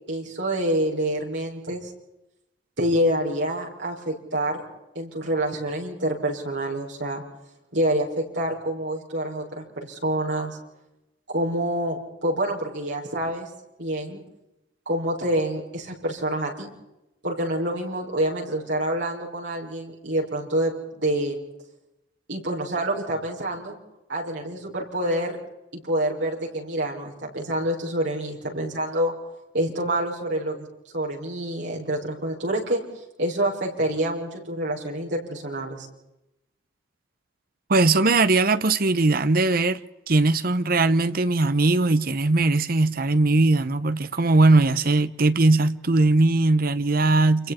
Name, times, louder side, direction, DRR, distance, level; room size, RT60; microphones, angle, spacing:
voice 1, 0.1-1.9 2.8-4.6 4.9-7.2 7.7-10.6 11.3-13.5 13.8-14.2 14.9-16.7 17.2-21.4 22.3-23.8 24.1-25.4 25.7-29.1 29.5-30.7 30.9-32.8 33.2-35.9, right 1 dB, 70° right, 6.0 m, -27 dB
voice 2, 37.7-39.8 40.1-47.5, right 2 dB, 50° right, 0.9 m, -20 dB
30.0 x 27.5 x 4.4 m
head